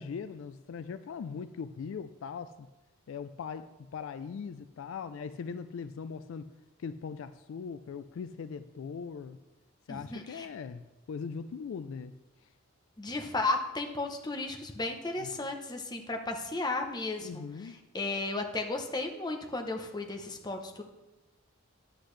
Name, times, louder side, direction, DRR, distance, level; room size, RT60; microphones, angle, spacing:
voice 1, 0.0-2.7 3.1-6.5 6.8-9.4 9.9-12.1 15.2-15.5 17.2-17.7, left 6 dB, 65° left, 12 dB, 0.3 m, -40 dB
voice 2, 9.9-10.5 13.0-20.8, left 2 dB, 20° left, 3 dB, 0.7 m, -34 dB
10.0 x 8.0 x 3.2 m, 1.0 s
head